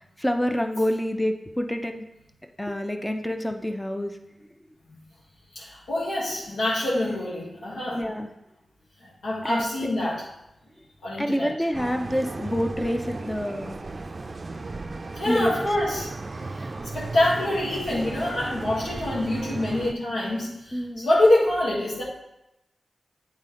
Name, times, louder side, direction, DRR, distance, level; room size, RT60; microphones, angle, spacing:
voice 1, 0.0-2.0 2.6-4.2 7.9-8.3 9.4-9.8 11.2-13.7 15.2-15.5 20.7-21.1, equal, 10° left, 5 dB, 0.6 m, -27 dB
voice 2, 5.5-8.0 9.0-10.2 11.0-11.5 15.1-16.1 16.9-22.0, left 1 dB, 90° left, -6 dB, 1.6 m, -25 dB
sound 1, 11.7-19.9, right 3 dB, 45° right, 0.4 m, -35 dB
8.1 x 4.2 x 3.8 m, 0.88 s
cardioid pair, 55°, 0 cm